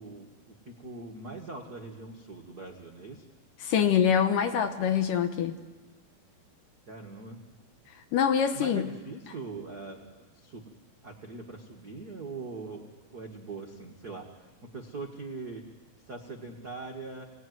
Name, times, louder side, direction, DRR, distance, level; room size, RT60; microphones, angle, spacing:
voice 1, 0.0-3.3 6.9-7.4 8.5-10.1 10.3-10.6 11.0-15.6 16.1-17.2, right 3 dB, 60° right, 1 dB, 1.0 m, -42 dB
voice 2, 3.6-5.6 8.1-8.9, left 8 dB, 70° left, 7 dB, 2.4 m, -25 dB
27.5 x 18.0 x 9.4 m, 1.3 s
omnidirectional pair, 4.5 m